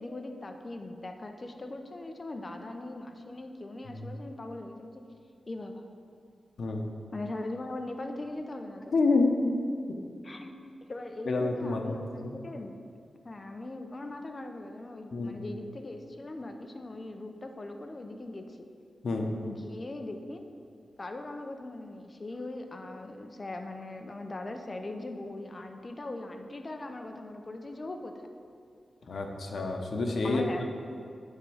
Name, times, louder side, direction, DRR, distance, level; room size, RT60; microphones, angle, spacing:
voice 1, 0.0-5.0 5.5-5.8 7.1-8.9 10.2-10.5 10.9-12.7 13.2-18.7 19.4-20.4 21.0-28.3 30.2-30.7, left 2 dB, 30° left, 5 dB, 0.6 m, -40 dB
voice 2, 8.9-9.6 11.3-12.3 15.1-15.4 19.0-19.3 29.1-30.7, left 3 dB, 65° left, 3 dB, 0.9 m, -28 dB
9.2 x 3.7 x 7.1 m, 2.3 s
wide cardioid pair, 145°, 0 cm